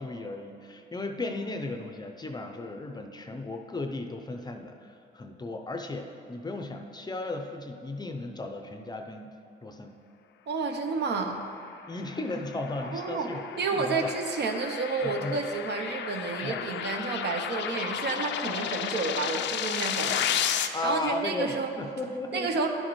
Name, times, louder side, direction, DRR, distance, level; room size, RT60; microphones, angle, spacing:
voice 1, 0.0-9.3 9.6-10.0 11.9-13.4 13.7-14.1 15.0-15.4 16.4-16.6 20.7-22.5, left 2 dB, 20° left, 5 dB, 0.5 m, -35 dB
voice 2, 10.5-11.4 12.8-13.3 13.6-21.7 22.3-22.7, right 4 dB, 60° right, 4 dB, 0.8 m, -30 dB
sound 1, 11.8-20.7, left 9 dB, 65° left, 0.4 m, -33 dB
11.0 x 6.5 x 3.1 m, 2.6 s
cardioid pair, 90°, 20 cm